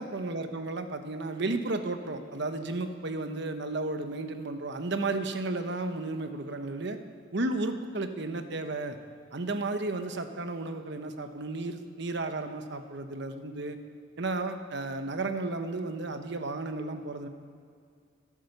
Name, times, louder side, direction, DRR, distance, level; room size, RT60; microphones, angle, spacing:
voice 1, 0.0-7.0 7.3-9.0 9.3-13.8 14.2-17.3, right 2 dB, 60° right, 7 dB, 1.1 m, -33 dB
22.5 x 8.8 x 6.7 m, 2.3 s
head